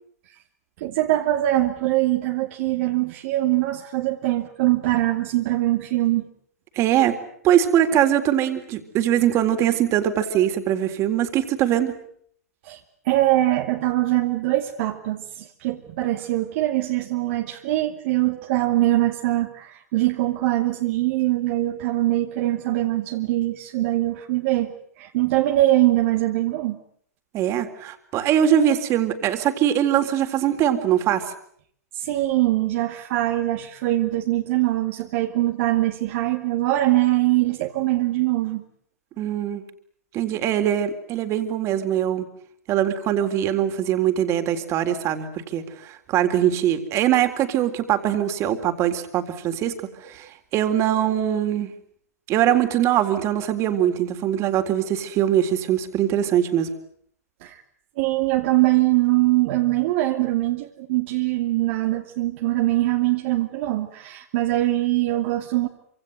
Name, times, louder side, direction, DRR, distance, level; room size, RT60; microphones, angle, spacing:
voice 1, 0.8-6.3 12.6-12.8 13.0-26.8 31.9-38.6 57.4-57.6 58.0-65.7, right 16 dB, 50° right, 1 dB, 2.7 m, -22 dB
voice 2, 6.8-7.2 7.4-11.9 27.3-31.2 39.2-39.6 40.1-42.3 42.7-49.7 50.1-51.7 52.3-56.7, right 10 dB, 35° right, 7 dB, 3.8 m, -22 dB
27.0 x 26.0 x 8.1 m, 0.65 s
figure-of-eight pair, 110°, 9 cm